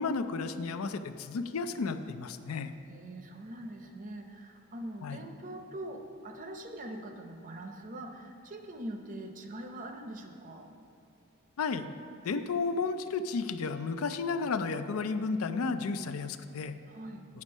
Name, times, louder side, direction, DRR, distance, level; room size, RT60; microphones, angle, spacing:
voice 1, 0.0-2.7 5.0-5.2 11.6-11.9 12.2-16.8, left 4 dB, 85° left, 10 dB, 0.4 m, -32 dB
voice 2, 2.9-10.7 16.9-17.3, right 1 dB, 40° right, 5 dB, 0.6 m, -43 dB
9.6 x 6.1 x 5.3 m, 2.6 s
head